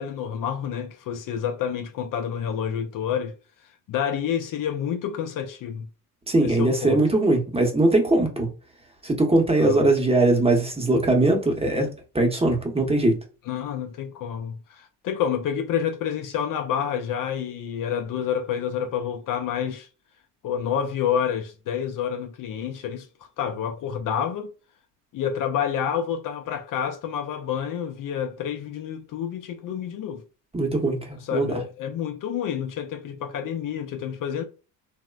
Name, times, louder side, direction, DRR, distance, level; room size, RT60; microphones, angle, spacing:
voice 1, 0.0-3.3 3.9-5.9 6.4-7.0 9.6-9.9 13.5-19.9 20.4-23.1 23.4-24.5 25.1-30.2 31.2-34.4, left 8 dB, 50° left, 0.5 m, -28 dB
voice 2, 6.3-8.5 9.0-11.9 12.1-13.2 30.5-31.6, right 2 dB, 15° right, 0.9 m, -21 dB
2.9 x 2.1 x 2.3 m
supercardioid pair, 75°, 41 cm